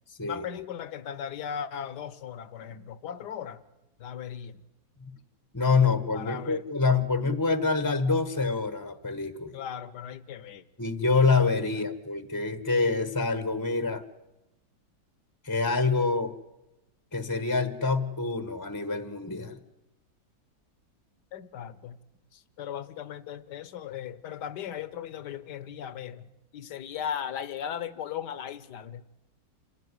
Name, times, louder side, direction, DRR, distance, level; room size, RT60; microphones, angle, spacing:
voice 1, 0.2-3.6 4.0-4.6 6.1-6.6 9.5-10.6 21.3-22.0 22.3-29.0, left 9 dB, 65° left, 1.6 m, -37 dB
voice 2, 5.5-9.5 10.8-14.0 15.4-16.3 17.1-19.6, left 4 dB, 15° left, 0.8 m, -26 dB
27.0 x 15.5 x 9.7 m
omnidirectional pair, 2.0 m